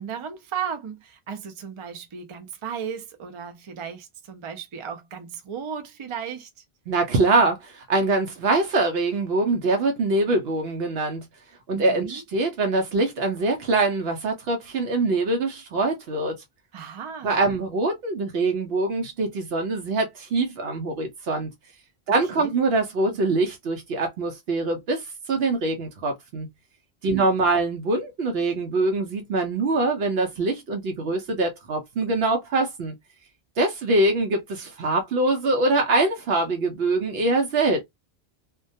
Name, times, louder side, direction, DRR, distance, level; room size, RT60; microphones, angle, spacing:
voice 1, 0.0-6.6 11.7-12.2 16.7-17.4 22.3-22.5 27.0-27.5, right 7 dB, 50° right, 0.4 m, -35 dB
voice 2, 6.9-11.3 11.7-16.4 17.2-21.5 22.1-26.5 27.0-32.9 33.6-37.8, right 2 dB, 75° right, 0.8 m, -24 dB
2.2 x 2.2 x 2.6 m
omnidirectional pair, 1.0 m